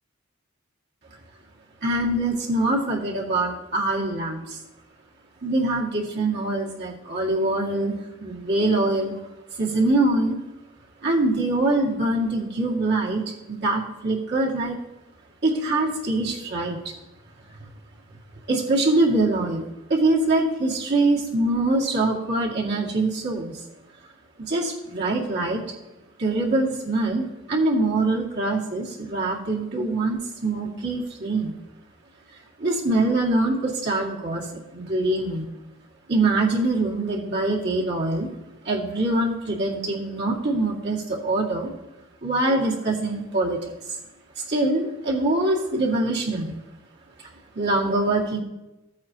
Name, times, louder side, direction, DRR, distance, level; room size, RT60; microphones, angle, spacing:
voice 1, 1.8-4.6 5.4-9.2 9.6-10.4 11.0-14.8 15.4-16.9 17.6-17.7 18.5-19.6 19.9-23.5 24.5-25.6 26.2-31.5 32.6-34.5 34.7-35.4 36.1-38.3 38.7-41.7 42.2-43.6 44.5-46.5 47.6-48.4, right 2 dB, 60° right, -3 dB, 2.1 m, -24 dB
14.5 x 8.5 x 2.9 m, 0.98 s
head